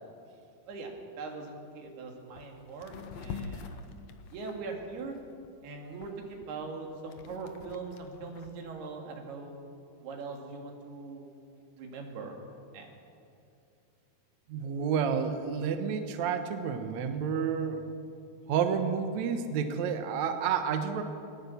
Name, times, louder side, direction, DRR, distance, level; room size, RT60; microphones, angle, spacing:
voice 1, 0.7-4.0 4.3-5.2 5.6-9.6 10.0-11.3 11.8-12.3 12.7-13.0, right 4 dB, 80° right, 2 dB, 4.3 m, -41 dB
sound 1, 1.8-1.9 2.3-2.5 2.8-5.5 6.0-8.5, left 5 dB, 75° left, 1.5 m, -44 dB
voice 2, 14.5-17.8 18.5-21.0, right 7 dB, 65° right, 7 dB, 1.9 m, -30 dB
20.0 x 19.0 x 7.1 m, 2.5 s
omnidirectional pair, 4.5 m